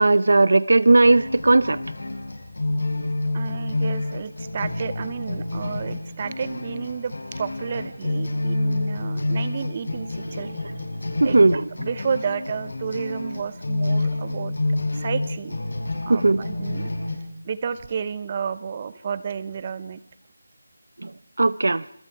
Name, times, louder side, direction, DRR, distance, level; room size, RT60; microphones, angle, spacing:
voice 1, 0.0-1.8 11.2-11.6 16.1-16.4 21.0-21.1 21.4-21.8, right 2 dB, 60° right, 19 dB, 0.7 m, -17 dB
sound 1, 1.0-17.1, left 2 dB, 65° left, 6.4 m, -28 dB
voice 2, 3.3-10.7 11.2-11.4 11.8-14.5 14.9-15.6 16.1-16.9 17.4-20.0, right 6 dB, 20° right, 16 dB, 0.8 m, -31 dB
26.5 x 21.5 x 4.7 m, 0.78 s
figure-of-eight pair, 175°, 0 cm